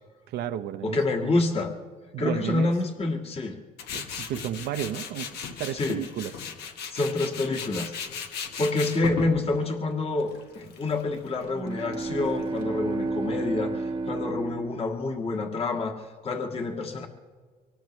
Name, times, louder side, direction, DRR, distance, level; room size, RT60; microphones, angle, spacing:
voice 1, 0.3-1.0 2.1-2.7 3.9-6.3, right 11 dB, 75° right, 9 dB, 0.7 m, -32 dB
voice 2, 0.8-1.7 2.2-3.6 5.7-6.0 6.9-7.9 8.6-17.1, left 2 dB, 35° left, 2 dB, 1.8 m, -27 dB
Tools, 3.8-12.6, left 6 dB, 75° left, 1.3 m, -38 dB
sound 1, 11.5-15.5, right 3 dB, 30° right, 0.8 m, -32 dB
24.0 x 18.5 x 3.2 m, 1.5 s
cardioid pair, 110°, 17 cm